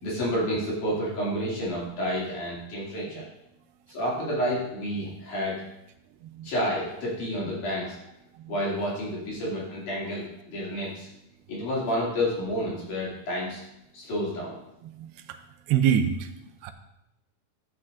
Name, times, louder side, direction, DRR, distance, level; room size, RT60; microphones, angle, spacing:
voice 1, 0.0-3.3 3.9-5.6 6.4-8.0 8.5-11.1 11.5-13.6 13.9-14.6, equal, 55° left, -5 dB, 3.7 m, -30 dB
voice 2, 14.8-15.4 15.7-16.3 16.6-16.7, right 9 dB, 85° right, 7 dB, 2.6 m, -26 dB
12.0 x 9.5 x 2.5 m, 0.85 s
omnidirectional pair, 4.6 m